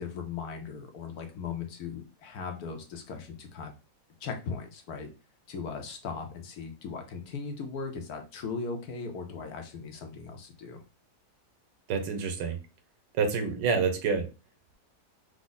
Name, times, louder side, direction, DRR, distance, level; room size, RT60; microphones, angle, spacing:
voice 1, 0.0-3.7 4.2-5.1 5.5-10.8, left 5 dB, 65° left, 5 dB, 1.2 m, -38 dB
voice 2, 11.9-12.6 13.2-14.3, right 5 dB, 85° right, 6 dB, 1.5 m, -27 dB
4.7 x 2.1 x 3.9 m, 0.30 s
omnidirectional pair, 1.8 m